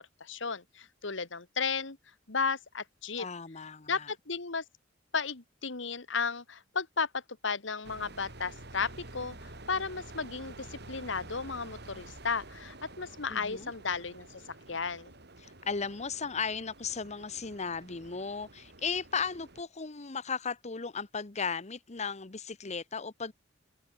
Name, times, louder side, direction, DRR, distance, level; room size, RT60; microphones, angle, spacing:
voice 1, 0.2-2.0 2.3-3.3 3.9-4.6 5.1-14.3 14.7-15.1, left 5 dB, 70° left, 1.8 m, -34 dB
voice 2, 3.2-4.1 13.3-13.7 15.4-23.3, left 5 dB, 35° left, 1.1 m, -36 dB
sound 1, 7.8-19.6, right 2 dB, 60° right, 6.0 m, -49 dB
head